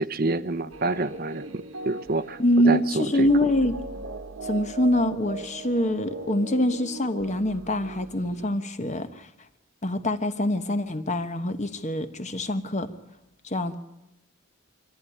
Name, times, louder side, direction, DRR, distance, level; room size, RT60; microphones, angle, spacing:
voice 1, 0.0-1.4 1.9-2.4 2.7-3.3, right 2 dB, 45° right, 11 dB, 0.8 m, -27 dB
sound 1, 0.7-8.5, right 3 dB, 75° right, 1.4 m, -39 dB
voice 2, 2.4-3.8 4.4-9.3 9.8-12.9 13.4-13.8, left 1 dB, 35° left, 10 dB, 1.2 m, -25 dB
23.5 x 14.5 x 10.0 m, 0.94 s
head